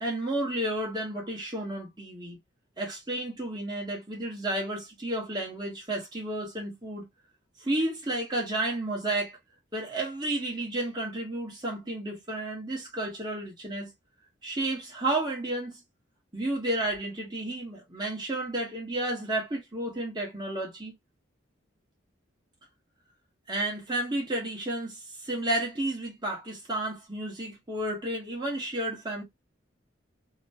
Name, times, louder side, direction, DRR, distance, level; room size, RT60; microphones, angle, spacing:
voice 1, 0.0-2.4 2.8-7.0 7.6-9.4 9.7-13.9 14.4-15.8 16.3-20.9 23.5-29.2, right 1 dB, 20° right, 1.2 m, -32 dB
3.0 x 2.1 x 2.8 m
head